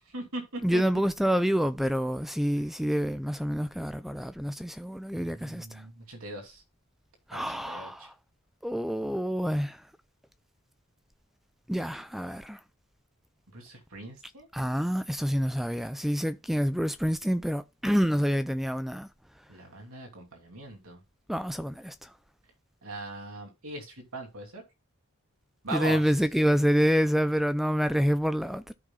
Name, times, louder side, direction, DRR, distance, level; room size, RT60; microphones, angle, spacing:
voice 1, 0.0-0.8 5.1-6.6 7.3-8.1 13.5-14.5 19.5-21.0 22.8-24.6 25.6-26.1, right 2 dB, 75° right, 2.9 m, -40 dB
voice 2, 0.6-5.8 7.3-8.1 8.6-9.8 11.7-12.6 14.5-19.1 21.3-22.1 25.7-28.7, equal, ahead, 0.4 m, -27 dB
13.5 x 5.9 x 2.4 m
head